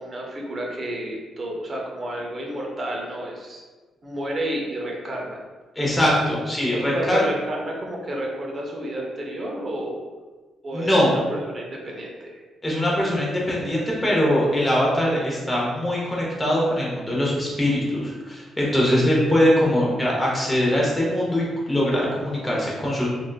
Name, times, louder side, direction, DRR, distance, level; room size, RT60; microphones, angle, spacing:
voice 1, 0.0-3.6 4.0-5.4 6.9-10.0 10.6-12.4, right 1 dB, 35° right, -1 dB, 0.6 m, -30 dB
voice 2, 5.8-7.2 10.7-11.1 12.6-23.1, equal, 10° left, -5 dB, 0.8 m, -22 dB
3.4 x 2.5 x 2.3 m, 1.3 s
cardioid pair, 145°, 0 cm